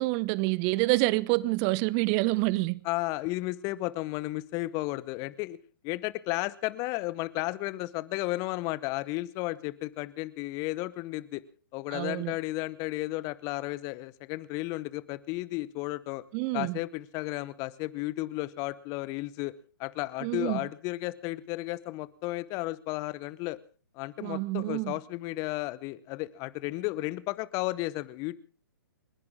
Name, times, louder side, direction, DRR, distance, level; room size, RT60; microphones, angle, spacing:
voice 1, 0.0-2.8 11.9-12.4 16.3-16.8 20.2-20.7 24.2-24.9, right 21 dB, 30° right, 0.9 m, -27 dB
voice 2, 2.8-5.6 5.8-11.4 11.7-16.2 16.5-19.5 19.8-23.6 23.9-28.3, left 19 dB, 30° left, 0.9 m, -33 dB
30.0 x 11.0 x 3.6 m
figure-of-eight pair, 120°, 11 cm